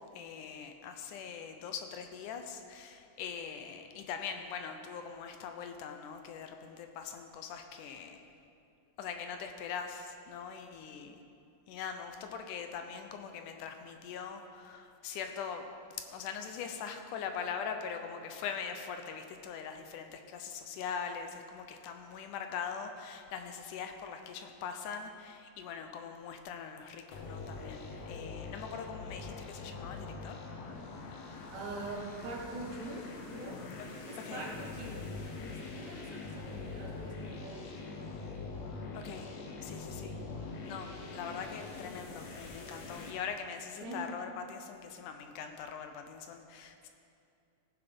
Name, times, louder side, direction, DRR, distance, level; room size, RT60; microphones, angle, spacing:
voice 1, 0.0-8.2 9.0-11.2 11.7-15.7 16.0-30.4 34.2-34.5 38.9-40.2 40.6-46.9, left 6 dB, 80° left, 6 dB, 2.3 m, -42 dB
sound 1, 27.1-43.1, left 3 dB, 60° left, 2.1 m, -43 dB
voice 2, 31.5-33.6 34.1-37.9 43.8-44.1, right 2 dB, 65° right, -1 dB, 2.5 m, -43 dB
17.0 x 7.5 x 5.3 m, 2.5 s
omnidirectional pair, 3.7 m